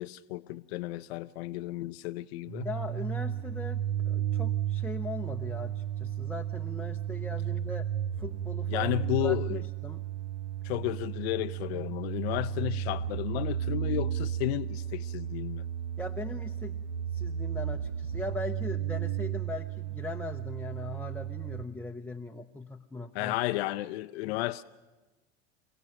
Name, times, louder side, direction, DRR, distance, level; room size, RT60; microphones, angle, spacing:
voice 1, 0.0-2.7 8.7-9.6 10.6-15.7 23.1-24.6, left 17 dB, 70° left, 0.6 m, -33 dB
sound 1, 2.5-21.6, right 10 dB, 55° right, 1.0 m, -33 dB
voice 2, 2.6-7.9 8.2-8.9 9.2-10.0 11.7-11.9 16.0-16.8 17.1-23.4, left 2 dB, 5° left, 0.7 m, -40 dB
28.5 x 16.5 x 6.3 m
hypercardioid pair, 85°, 33 cm